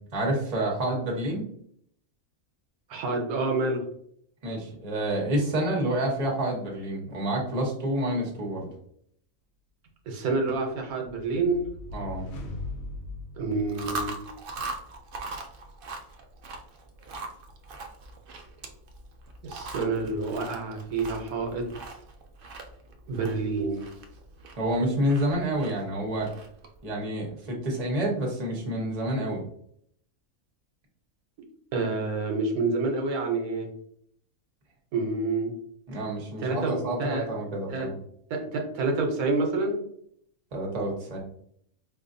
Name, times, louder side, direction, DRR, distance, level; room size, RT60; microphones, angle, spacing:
voice 1, 0.1-1.4 4.4-8.7 11.9-12.2 24.5-26.3 26.8-29.4 35.9-37.9 40.5-41.2, right 1 dB, 30° right, -1 dB, 1.0 m, -28 dB
voice 2, 2.9-3.8 10.1-11.6 13.4-14.1 19.4-21.6 23.1-23.8 31.7-33.7 34.9-35.5 36.4-36.7 37.0-37.3 37.7-37.9 38.3-39.8, right 3 dB, 85° right, 2 dB, 1.3 m, -28 dB
sound 1, 10.9-14.4, left 2 dB, 80° left, 1.1 m, -40 dB
Chewing mastication, 13.6-26.8, right 3 dB, 60° right, 0.5 m, -41 dB
4.7 x 2.5 x 2.6 m, 0.67 s
omnidirectional pair, 1.5 m